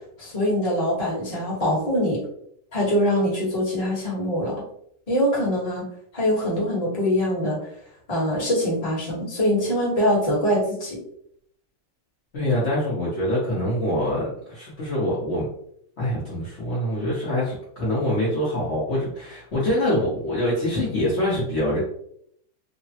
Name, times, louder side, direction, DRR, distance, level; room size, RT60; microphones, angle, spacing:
voice 1, 0.2-2.2 2.7-4.5 5.1-5.8 6.1-7.6 8.1-11.0, equal, 30° left, -6 dB, 0.7 m, -23 dB
voice 2, 12.3-15.5 16.0-21.8, left 1 dB, 75° left, -7 dB, 0.6 m, -25 dB
3.5 x 2.0 x 2.8 m, 0.69 s
omnidirectional pair, 2.4 m